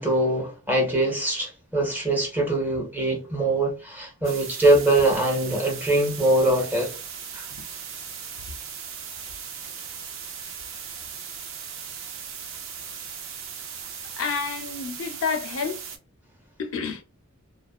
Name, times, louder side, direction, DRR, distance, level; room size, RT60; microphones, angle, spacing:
voice 1, 0.0-6.9 7.3-7.5, right 1 dB, 10° right, 0.7 m, -23 dB
sound 1, 4.2-16.0, right 7 dB, 65° right, 0.5 m, -38 dB
voice 2, 14.2-15.8 16.6-17.0, left 5 dB, 75° left, 0.5 m, -29 dB
2.4 x 2.1 x 2.3 m
head